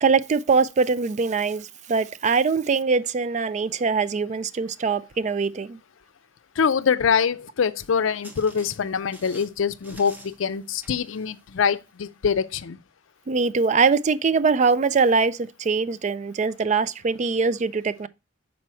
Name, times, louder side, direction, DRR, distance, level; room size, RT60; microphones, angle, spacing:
voice 1, 0.0-5.8 13.3-18.1, right 4 dB, 35° right, 0.3 m, -22 dB
voice 2, 6.6-12.8, left 6 dB, 80° left, 0.5 m, -24 dB
sound 1, 7.8-12.1, right 1 dB, 10° right, 0.9 m, -50 dB
6.1 x 4.2 x 4.3 m
head